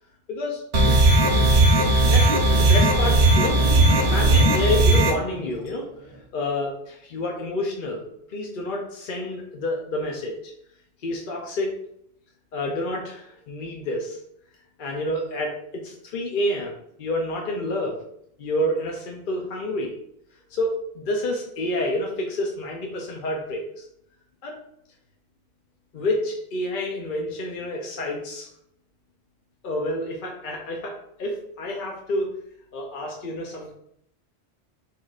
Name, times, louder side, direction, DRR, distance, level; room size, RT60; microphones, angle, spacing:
voice 1, 0.3-0.6 2.0-3.6 4.0-10.5 11.0-11.7 12.5-14.2 14.8-18.0 18.4-20.0 20.5-23.9 24.4-24.6 25.9-28.5 29.6-32.3 32.7-33.7, left 1 dB, 55° left, 0 dB, 0.8 m, -29 dB
sound 1, 0.7-5.1, right 2 dB, 85° right, 1.2 m, -17 dB
sound 2, 2.9-6.2, right 3 dB, 55° right, 1.0 m, -35 dB
4.7 x 4.4 x 2.4 m, 0.73 s
omnidirectional pair, 1.1 m